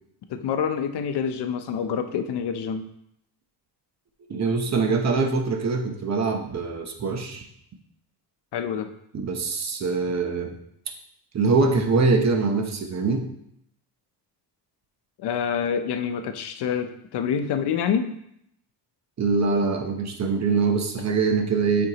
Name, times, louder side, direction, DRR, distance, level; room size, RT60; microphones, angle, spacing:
voice 1, 0.3-2.9 8.5-8.9 15.2-18.1, left 7 dB, 75° left, 8 dB, 0.7 m, -27 dB
voice 2, 4.3-7.4 9.1-10.5 11.3-13.3 19.2-21.9, right 4 dB, 40° right, 3 dB, 0.9 m, -23 dB
7.7 x 4.5 x 2.9 m, 0.74 s
cardioid pair, 135°, 40 cm